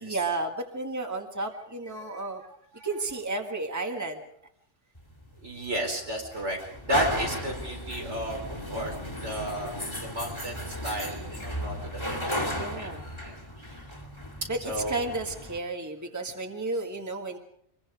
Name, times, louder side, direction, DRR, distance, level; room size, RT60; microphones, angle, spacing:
voice 1, 0.0-2.4 2.8-4.3 11.1-11.5 12.5-13.1 14.5-14.6 14.9-17.4, right 2 dB, 15° right, 4 dB, 1.7 m, -33 dB
sound 1, 5.0-15.6, equal, 25° left, 2.6 m, -35 dB
voice 2, 5.4-8.9 9.2-12.9 13.2-13.8 14.6-15.0, equal, 80° right, 1 dB, 5.0 m, -33 dB
25.0 x 21.0 x 5.0 m, 0.71 s
omnidirectional pair, 1.2 m